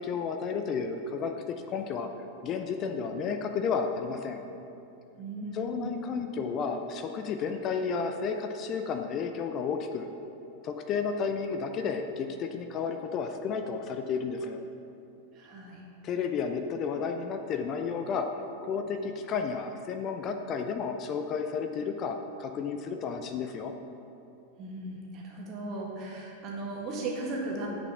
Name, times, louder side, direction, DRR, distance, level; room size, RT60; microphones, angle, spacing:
voice 1, 0.0-2.1 2.4-4.4 5.5-10.1 10.6-14.6 16.0-18.3 18.6-23.7, left 5 dB, 35° left, 6 dB, 0.5 m, -32 dB
voice 2, 5.2-6.0 15.3-15.8 24.6-27.7, right 2 dB, 35° right, -1 dB, 1.7 m, -36 dB
9.5 x 5.2 x 5.6 m, 2.8 s
figure-of-eight pair, 90°, 0 cm